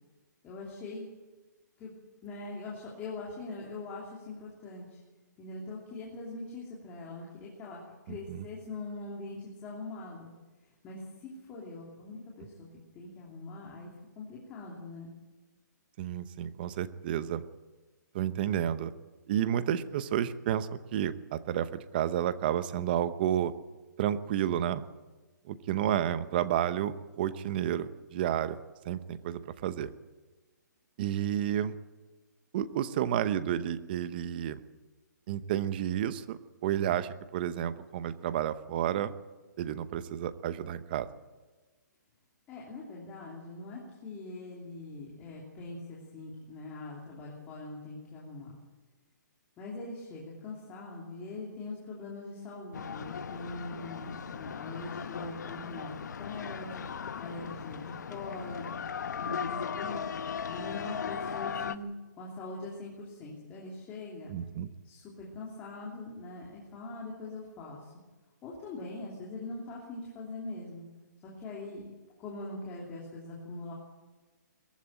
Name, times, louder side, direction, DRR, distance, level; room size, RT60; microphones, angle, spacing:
voice 1, 0.4-1.1 1.8-1.9 2.2-5.0 5.4-7.8 8.0-10.3 10.8-12.7 12.9-13.9 14.2-15.1 42.5-48.6 49.6-56.9 57.2-58.7 59.2-60.0 60.5-61.9 62.2-64.3 64.8-67.9 68.4-70.8 71.2-71.9 72.2-73.7, left 2 dB, 15° left, -4 dB, 3.0 m, -42 dB
voice 2, 8.1-8.4 16.0-17.4 18.1-18.9 19.3-23.5 24.0-24.8 25.4-28.6 28.8-29.9 31.0-31.7 32.5-34.6 35.3-39.1 39.6-41.1 64.3-64.7, right 10 dB, 30° right, 13 dB, 0.9 m, -31 dB
sound 1, 52.7-61.8, left 7 dB, 70° left, 1.0 m, -38 dB
21.5 x 15.0 x 8.9 m, 1.3 s
hypercardioid pair, 165°, 10 cm